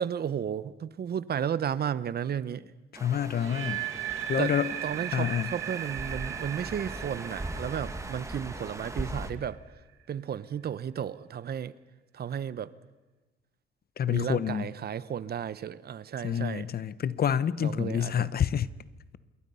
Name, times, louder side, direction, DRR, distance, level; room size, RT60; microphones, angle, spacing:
voice 1, 0.0-2.7 4.4-4.5 4.8-9.6 10.1-11.7 12.1-12.7 14.1-16.7 17.6-18.3, right 8 dB, 50° right, 0.9 m, -33 dB
voice 2, 2.9-3.9 4.3-4.7 5.1-5.5 14.0-14.7 16.2-18.7, left 9 dB, 50° left, 0.9 m, -28 dB
sound 1, 2.9-9.3, right 2 dB, 15° right, 2.2 m, -40 dB
sound 2, 3.3-9.3, right 11 dB, 85° right, 2.1 m, -37 dB
27.5 x 22.0 x 5.6 m
cardioid pair, 90°, 20 cm